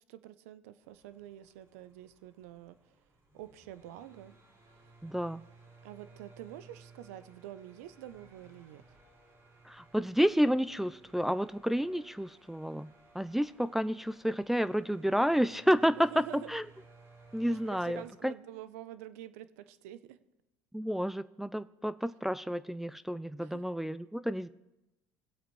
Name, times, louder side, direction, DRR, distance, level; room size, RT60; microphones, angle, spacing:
voice 1, 0.1-2.9 3.3-4.3 5.8-8.8 16.0-16.5 17.5-20.2 23.4-23.6, right 12 dB, 85° right, 14 dB, 0.6 m, -47 dB
sound 1, 0.8-18.1, right 3 dB, 40° right, 4.2 m, -60 dB
voice 2, 5.0-5.4 9.6-16.6 17.3-18.3 20.7-24.5, equal, 5° right, 13 dB, 0.3 m, -30 dB
20.0 x 8.0 x 3.2 m, 0.96 s
supercardioid pair, 100°, 8 cm